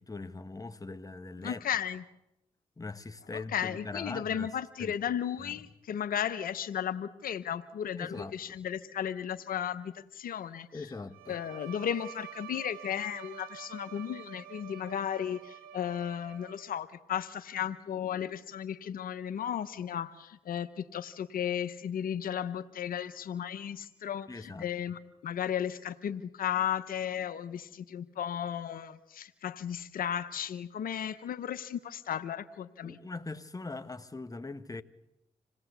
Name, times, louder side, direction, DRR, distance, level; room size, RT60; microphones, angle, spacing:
voice 1, 0.0-1.6 2.8-4.5 4.8-5.0 5.4-5.7 8.0-8.4 10.7-11.4 24.3-24.7 32.8-34.8, left 3 dB, 25° left, 1.5 m, -41 dB
voice 2, 1.4-2.0 3.5-10.9 11.3-33.0, left 9 dB, 75° left, 0.9 m, -35 dB
Bowed string instrument, 11.1-16.9, right 11 dB, 80° right, 1.3 m, -48 dB
27.0 x 18.0 x 8.1 m
supercardioid pair, 50°, 15 cm